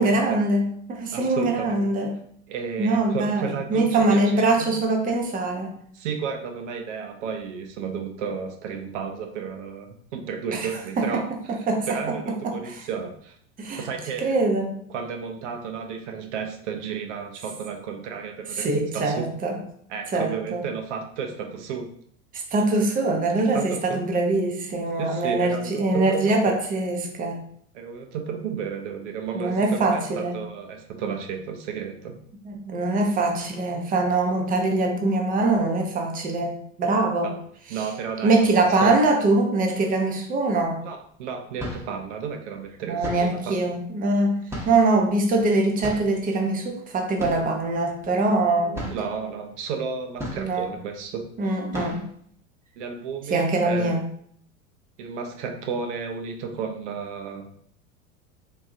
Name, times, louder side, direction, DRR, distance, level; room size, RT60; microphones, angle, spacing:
voice 1, 0.0-2.2 2.8-5.7 10.5-10.7 11.0-11.2 11.5-12.2 12.4-12.8 13.6-13.9 14.2-14.8 18.5-19.6 20.1-20.6 22.3-27.4 29.3-30.4 32.4-37.3 37.7-37.8 38.2-40.8 42.9-48.8 50.4-50.7 51.4-52.1 53.3-54.0, right 2 dB, 20° right, 2 dB, 0.6 m, -23 dB
voice 2, 1.1-1.7 2.5-3.9 4.1-4.7 5.9-11.2 11.9-13.4 13.7-14.3 14.9-18.7 18.9-19.1 19.9-21.9 23.5-24.0 25.0-26.2 26.5-26.6 27.7-32.2 37.2-37.4 37.7-38.5 38.8-39.0 40.8-43.5 48.6-51.3 52.8-54.0 55.0-57.5, right 6 dB, 65° right, 5 dB, 0.6 m, -32 dB
sound 1, 40.6-40.7 41.4-42.0 43.0-43.5 44.5-45.0 45.8-46.2 47.2-47.6 47.9-48.0 48.4-48.5 48.7-49.1 50.2-50.7 51.1-51.3 51.7-52.1, equal, 5° right, 1.0 m, -35 dB
3.8 x 2.6 x 2.5 m, 0.64 s
hypercardioid pair, 85°, 38 cm